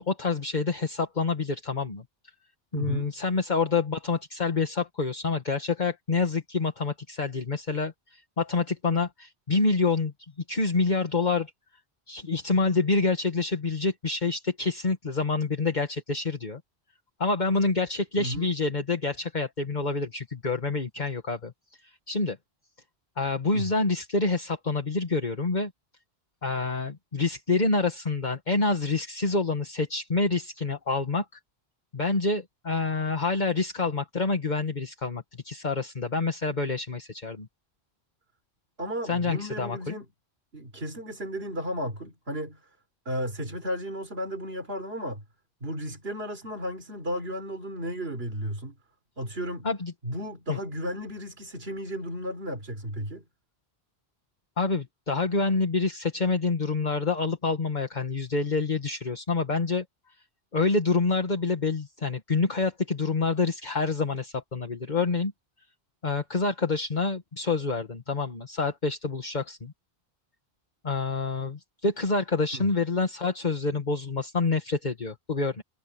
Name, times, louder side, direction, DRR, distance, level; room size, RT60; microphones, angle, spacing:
voice 1, 0.0-2.0 2.7-10.1 10.5-11.5 12.1-16.6 17.2-21.5 21.8-22.4 23.2-25.7 26.4-31.3 31.9-37.5 39.0-39.9 49.6-49.9 50.5-50.6 54.6-59.8 60.5-65.3 66.0-69.7 70.8-75.6, left 3 dB, 45° left, 1.8 m, -27 dB
voice 2, 2.7-3.1 18.2-18.5 23.5-23.7 38.8-40.0 40.5-42.6 43.1-45.2 45.6-48.7 49.2-49.7 50.0-53.2 72.5-72.6, equal, 70° right, 4.2 m, -34 dB
omnidirectional pair, 1.1 m